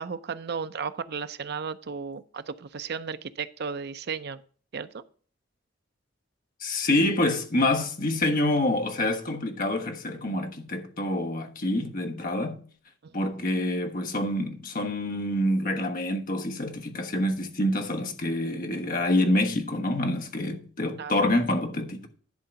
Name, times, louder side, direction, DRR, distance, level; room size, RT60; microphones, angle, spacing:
voice 1, 0.0-4.4 4.7-5.0 13.0-13.4 21.0-21.1, right 6 dB, 60° right, 0.5 m, -34 dB
voice 2, 6.6-12.6 13.1-22.1, left 1 dB, 50° left, 1.3 m, -27 dB
10.5 x 3.8 x 6.9 m
head